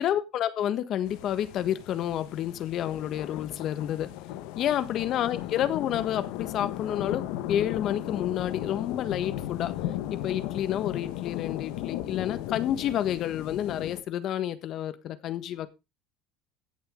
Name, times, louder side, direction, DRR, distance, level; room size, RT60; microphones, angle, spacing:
voice 1, 0.0-4.1 4.5-9.8 10.1-15.7, left 11 dB, 50° left, 1.4 m, -29 dB
sound 1, 1.1-14.0, left 13 dB, 75° left, 1.2 m, -36 dB
17.0 x 7.0 x 3.7 m
supercardioid pair, 105°, 0 cm